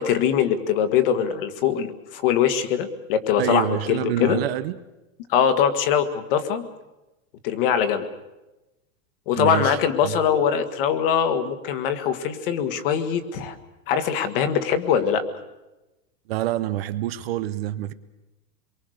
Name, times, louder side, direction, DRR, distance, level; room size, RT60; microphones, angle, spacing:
voice 1, 0.0-4.4 5.3-6.7 7.4-8.1 9.3-13.6 13.9-15.2, left 8 dB, 45° left, 1.8 m, -22 dB
voice 2, 3.4-4.8 9.4-9.8 10.0-10.1 16.3-17.9, right 13 dB, 50° right, 0.9 m, -26 dB
26.0 x 23.5 x 6.5 m
supercardioid pair, 180°, 40 cm